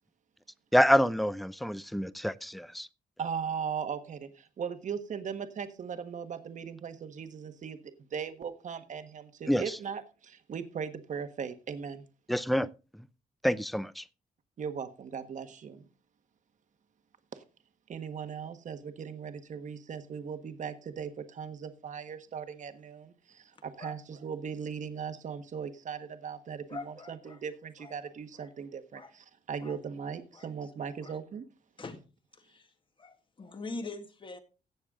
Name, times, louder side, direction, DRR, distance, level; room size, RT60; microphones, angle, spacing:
voice 1, 0.7-2.9 9.5-9.8 12.3-12.7 13.4-14.0, equal, ahead, 0.5 m, -27 dB
voice 2, 3.2-7.8 8.1-12.0 14.6-15.9 17.3-17.4 17.9-31.4, right 7 dB, 55° right, 1.4 m, -38 dB
voice 3, 26.7-27.4 27.8-27.9 28.3-28.5 28.9-29.1 29.6-29.8 30.3-30.7 31.0-31.2 31.8-32.0 32.3-34.4, left 3 dB, 35° left, 1.8 m, -44 dB
16.0 x 7.0 x 3.7 m
cardioid pair, 110°, 15 cm